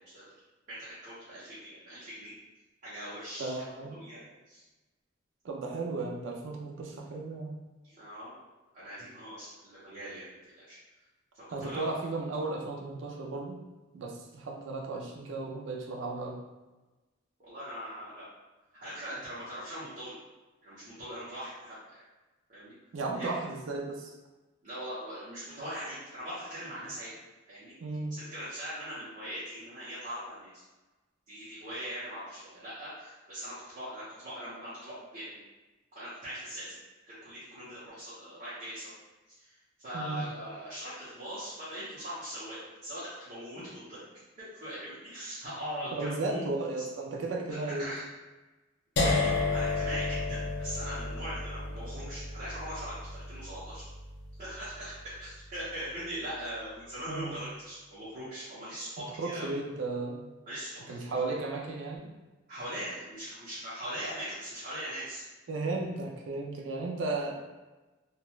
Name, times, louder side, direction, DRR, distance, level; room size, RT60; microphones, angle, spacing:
voice 1, 0.7-2.3 2.8-4.2 4.5-4.6 7.8-8.3 8.7-10.8 11.5-11.9 17.4-18.2 18.8-20.1 20.6-22.0 22.5-22.7 23.1-23.4 24.6-27.1 27.5-27.7 28.1-30.5 31.3-35.3 35.9-36.8 37.1-38.9 39.4-44.0 44.4-46.4 47.5-48.1 49.0-53.8 54.4-59.5 60.5-61.1 62.5-65.2, equal, 40° right, -12 dB, 0.9 m, -41 dB
voice 2, 3.4-4.0 5.4-7.6 11.5-13.6 13.9-16.4 22.9-24.1 27.8-28.1 39.9-40.2 45.9-47.9 57.1-57.4 59.2-60.3 60.9-62.1 65.5-67.3, right 3 dB, 65° right, 0 dB, 0.4 m, -35 dB
sound 1, 49.0-54.9, left 3 dB, 60° left, 0.4 m, -32 dB
3.0 x 2.4 x 2.3 m, 1.2 s
head